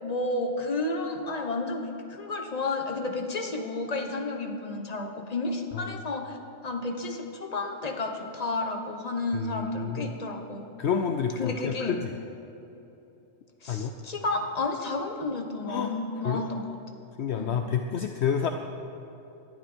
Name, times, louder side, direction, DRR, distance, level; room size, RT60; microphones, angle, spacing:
voice 1, 0.0-6.4 6.6-10.7 11.4-12.0 13.6-16.8 17.3-17.8, left 2 dB, 30° left, 4 dB, 1.3 m, -31 dB
voice 2, 9.3-10.2 10.8-12.1 13.7-13.9 15.7-15.9 16.2-16.4 17.2-18.5, left 7 dB, 65° left, 5 dB, 0.9 m, -29 dB
19.5 x 11.5 x 4.5 m, 3.0 s
omnidirectional pair, 1.3 m